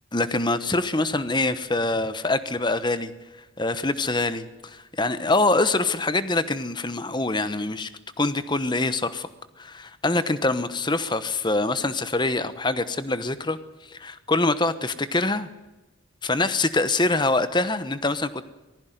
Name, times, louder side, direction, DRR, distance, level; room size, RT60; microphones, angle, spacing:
voice 1, 0.1-3.1 3.6-7.9 8.2-9.3 9.6-13.6 13.9-15.5 16.2-18.4, left 2 dB, 20° left, 12 dB, 1.1 m, -24 dB
19.5 x 15.5 x 9.3 m, 1.1 s
head